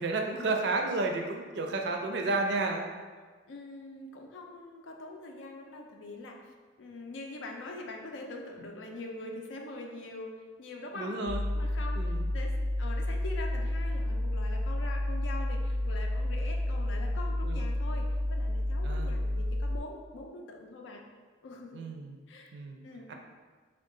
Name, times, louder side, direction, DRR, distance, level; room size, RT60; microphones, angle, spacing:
voice 1, 0.0-2.8 8.6-8.7 11.0-11.4 12.0-12.3 17.4-17.6 18.8-19.2 21.7-22.2 22.5-22.8 23.1-23.2, right 3 dB, 60° right, 3 dB, 0.4 m, -32 dB
voice 2, 3.5-6.4 6.8-11.2 11.5-12.5 12.8-21.0 21.4-21.8 22.3-22.5 22.8-23.1, left 2 dB, 85° left, 1 dB, 0.5 m, -43 dB
sound 1, 11.3-19.8, left 1 dB, 10° left, 0.7 m, -30 dB
3.6 x 2.3 x 3.7 m, 1.4 s
head